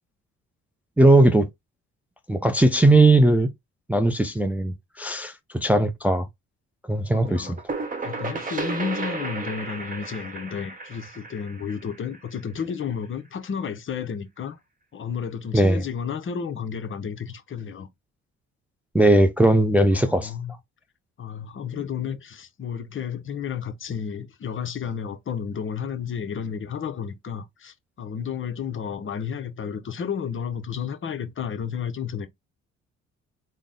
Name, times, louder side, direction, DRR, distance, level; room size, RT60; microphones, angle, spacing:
voice 1, 1.0-1.5 2.3-3.5 3.9-6.3 6.9-7.6 15.5-15.8 18.9-20.3, right 1 dB, 5° right, 0.4 m, -18 dB
voice 2, 7.1-7.6 8.0-14.6 14.9-17.9 19.9-20.5 21.2-32.3, left 7 dB, 40° left, 0.7 m, -32 dB
sound 1, 7.2-12.8, right 3 dB, 25° right, 1.0 m, -33 dB
3.9 x 2.0 x 3.7 m
cardioid pair, 90°, 30 cm